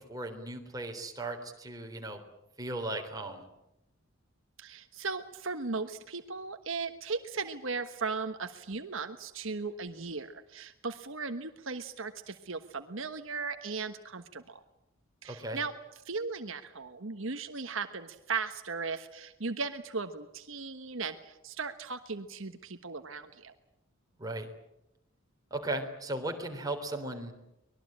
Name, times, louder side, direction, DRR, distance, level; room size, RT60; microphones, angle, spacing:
voice 1, 0.1-2.2 2.6-3.4 15.2-15.6 24.2-24.5 25.5-27.3, right 2 dB, 15° right, 3 dB, 3.6 m, -36 dB
voice 2, 4.6-14.6 15.2-15.7 16.0-23.5, right 4 dB, 65° right, 8 dB, 1.3 m, -37 dB
24.5 x 21.0 x 8.8 m, 0.87 s
head